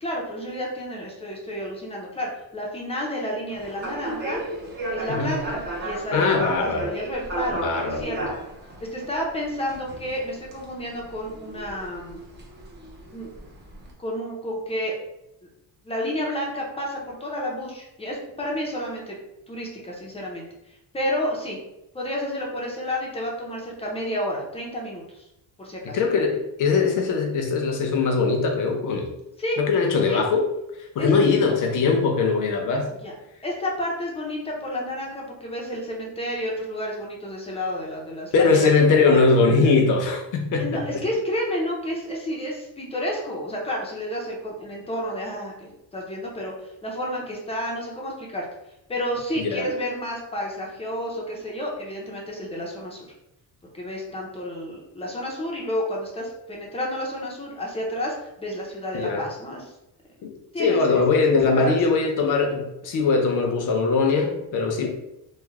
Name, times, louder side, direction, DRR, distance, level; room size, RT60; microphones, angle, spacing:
voice 1, 0.0-4.4 4.9-8.4 8.9-12.2 13.1-13.3 14.0-14.9 15.8-19.2 19.5-20.4 20.9-21.6 21.9-25.2 25.6-26.0 29.4-29.6 30.1-30.2 31.0-31.1 33.0-33.1 33.4-39.3 40.6-46.5 46.8-48.5 48.9-53.1 53.7-59.7 60.5-61.8, equal, 15° left, -2 dB, 0.6 m, -30 dB
sound 1, 3.5-13.9, right 1 dB, 30° right, 0.7 m, -35 dB
voice 2, 6.1-6.9 7.6-8.3 25.8-29.1 29.6-30.5 30.9-32.9 38.3-41.0 49.4-49.7 58.9-59.3 60.2-64.9, left 4 dB, 55° left, 3 dB, 0.7 m, -21 dB
3.1 x 2.1 x 3.4 m, 0.89 s
cardioid pair, 165°, 37 cm